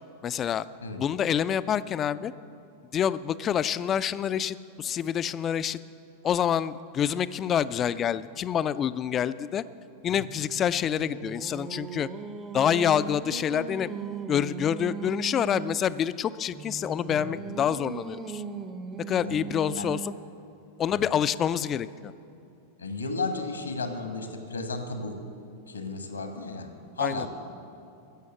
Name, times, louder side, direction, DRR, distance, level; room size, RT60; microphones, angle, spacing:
voice 1, 0.2-0.7 1.0-2.3 2.9-5.8 6.2-9.6 10.0-12.1 12.5-13.9 14.3-18.4 19.1-20.1 20.8-22.1 27.0-27.3, left 9 dB, 25° left, 16 dB, 0.3 m, -27 dB
Singing, 10.5-15.9 16.5-20.4, right 6 dB, 20° right, 0.7 m, -38 dB
voice 2, 22.8-25.2 25.7-27.3, left 3 dB, 80° left, 6 dB, 1.3 m, -34 dB
14.5 x 7.0 x 7.8 m, 2.6 s
figure-of-eight pair, 90°, 0 cm